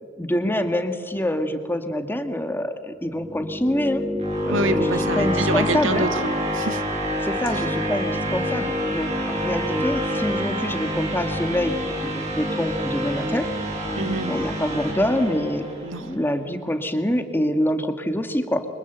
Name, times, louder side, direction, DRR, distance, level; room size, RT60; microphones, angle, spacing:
voice 1, 0.2-4.0 4.5-6.1 7.2-13.5 14.3-15.7 16.0-18.7, left 1 dB, 10° left, 7 dB, 1.7 m, -26 dB
sound 1, 3.0-16.1, equal, 35° right, 5.8 m, -27 dB
voice 2, 4.5-6.8 14.0-14.4 15.8-16.1, right 2 dB, 80° right, 9 dB, 1.8 m, -27 dB
29.0 x 24.5 x 8.0 m, 2.1 s
head